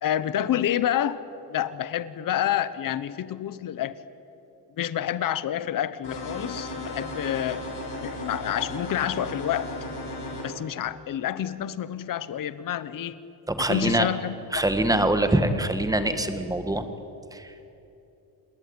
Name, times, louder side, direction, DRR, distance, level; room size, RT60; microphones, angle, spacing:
voice 1, 0.0-1.2 1.5-3.9 4.8-9.7 10.4-13.2 13.6-14.6, left 11 dB, 50° left, 15 dB, 1.1 m, -28 dB
sound 1, 6.0-10.4, left 1 dB, 75° left, 7.5 m, -35 dB
voice 2, 13.5-14.1 14.5-16.9 17.3-17.5, right 1 dB, 10° right, 9 dB, 1.6 m, -24 dB
27.5 x 20.5 x 9.8 m, 2.9 s
cardioid pair, 160°, 41 cm